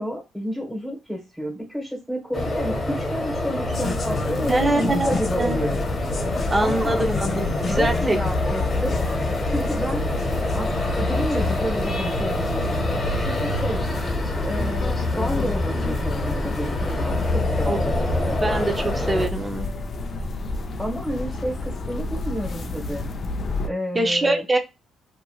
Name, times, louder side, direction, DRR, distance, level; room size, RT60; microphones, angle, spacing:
voice 1, 0.0-5.8 6.6-7.1 7.8-9.0 9.4-10.1 10.5-13.8 14.4-18.4 20.8-23.1 23.6-24.4, equal, ahead, -3 dB, 1.1 m, -30 dB
sound 1, 2.3-19.3, left 2 dB, 30° left, 0.9 m, -26 dB
sound 2, 3.7-23.7, left 2 dB, 45° left, 0.4 m, -30 dB
voice 2, 4.5-5.6 6.5-8.2 17.7-17.8 18.4-19.7 23.9-24.6, right 2 dB, 20° right, 5 dB, 0.6 m, -23 dB
2.9 x 2.5 x 2.3 m, 0.24 s
cardioid pair, 90°, 0 cm